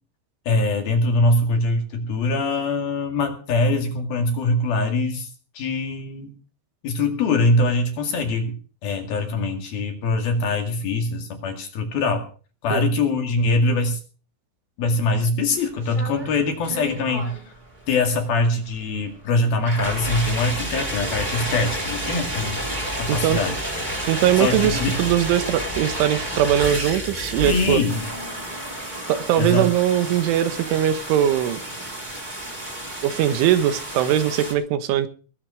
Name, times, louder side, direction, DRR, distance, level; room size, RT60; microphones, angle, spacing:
voice 1, 0.5-5.3 5.6-6.3 6.8-8.5 8.8-12.3 12.6-14.0 14.8-17.4 17.9-22.6 23.0-23.6 24.4-25.0 27.4-28.1 29.4-29.7, left 2 dB, 55° left, 5 dB, 3.7 m, -23 dB
sound 1, 15.6-34.5, equal, 10° right, 3.0 m, -31 dB
voice 2, 23.1-23.4 24.1-27.8 29.1-31.6 33.0-35.1, right 11 dB, 75° right, 13 dB, 3.5 m, -21 dB
20.5 x 8.4 x 6.4 m, 0.39 s
omnidirectional pair, 5.7 m